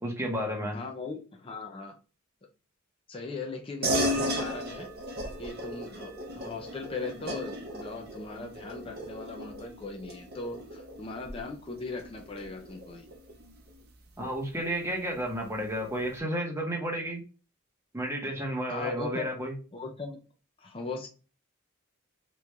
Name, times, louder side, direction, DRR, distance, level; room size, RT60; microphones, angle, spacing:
voice 1, 0.0-0.8 14.2-17.2 17.9-19.5, equal, 15° right, 0 dB, 0.9 m, -32 dB
voice 2, 0.7-2.0 3.1-4.9 5.4-13.1 18.7-19.3 19.7-20.2 20.6-21.1, left 3 dB, 25° left, 2 dB, 0.5 m, -39 dB
sound 1, 3.8-13.7, equal, 45° right, 0.8 m, -35 dB
3.1 x 2.6 x 3.3 m, 0.34 s
head